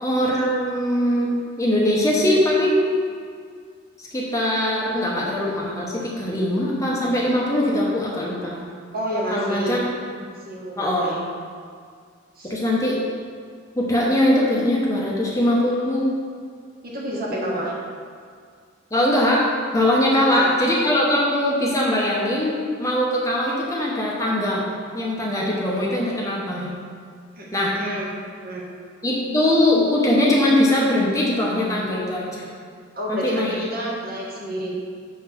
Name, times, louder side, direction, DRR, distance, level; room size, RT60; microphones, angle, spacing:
voice 1, 0.0-3.0 4.0-8.6 9.3-9.8 10.8-11.2 12.4-13.0 13.8-16.2 17.3-17.5 18.9-19.5 19.7-24.6 24.9-26.7 27.5-27.8 29.0-32.5 33.1-33.7, left 1 dB, 15° left, -4 dB, 0.8 m, -21 dB
voice 2, 8.9-9.8 10.3-11.2 12.3-12.5 16.8-17.7 20.0-20.5 27.4-27.5 27.7-28.1 28.4-28.7 32.9-34.7, right 1 dB, 50° right, -5 dB, 1.5 m, -29 dB
6.4 x 3.8 x 6.0 m, 2.1 s
head